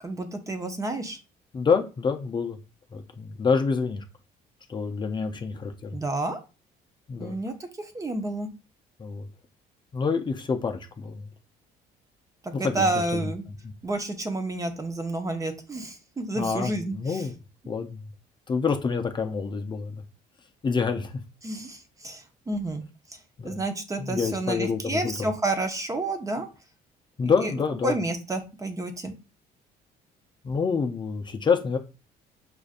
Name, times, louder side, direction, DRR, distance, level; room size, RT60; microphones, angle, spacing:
voice 1, 0.0-1.2 5.9-6.4 7.2-7.7 7.9-8.5 12.4-13.4 13.8-17.2 21.4-22.8 23.4-26.5 27.2-27.5 27.8-29.1, right 2 dB, 20° right, 0.6 m, -30 dB
voice 2, 1.5-2.6 2.9-4.0 4.7-6.0 7.1-7.4 9.0-9.3 9.9-11.3 12.5-13.3 16.3-17.3 17.7-18.1 18.5-20.0 20.6-21.2 23.4-23.6 24.0-25.1 27.2-28.0 30.4-31.8, left 5 dB, 25° left, 0.5 m, -27 dB
4.9 x 2.5 x 2.4 m
cardioid pair, 110°, 17 cm